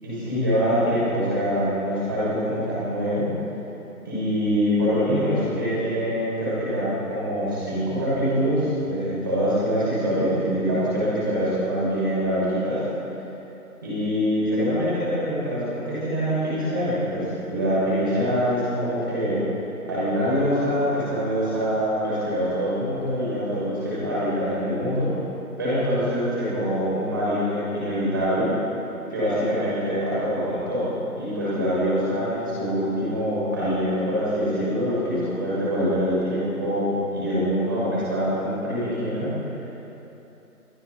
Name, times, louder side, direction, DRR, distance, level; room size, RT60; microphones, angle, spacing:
voice 1, 0.0-3.3 4.0-12.8 13.8-19.4 19.8-25.1 25.6-28.5 29.1-30.9 31.2-39.3, equal, 15° right, -9 dB, 6.3 m, -24 dB
28.5 x 24.5 x 4.4 m, 2.9 s
figure-of-eight pair, 175°, 46 cm